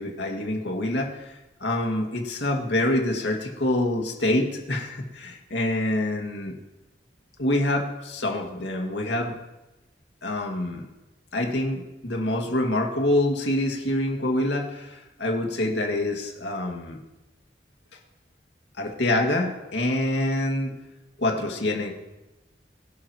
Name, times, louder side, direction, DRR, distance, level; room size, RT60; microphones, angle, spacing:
voice 1, 0.0-6.6 7.4-9.3 10.2-10.9 11.3-17.0 18.8-20.8 21.2-21.9, left 1 dB, 90° left, 1 dB, 2.2 m, -26 dB
22.5 x 11.5 x 3.1 m, 1.0 s
head